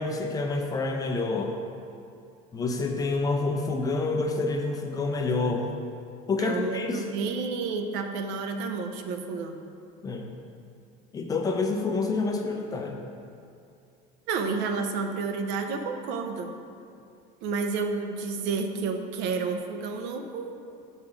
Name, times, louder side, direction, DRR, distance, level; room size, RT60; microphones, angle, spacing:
voice 1, 0.0-1.6 2.5-5.7 6.3-7.0 10.0-10.3 11.1-13.0, left 3 dB, 20° left, 3 dB, 0.5 m, -28 dB
voice 2, 6.3-9.5 14.3-16.5 17.4-20.6, right 4 dB, 65° right, 5 dB, 0.7 m, -30 dB
5.9 x 5.5 x 5.0 m, 2.5 s
cardioid pair, 155°, 19 cm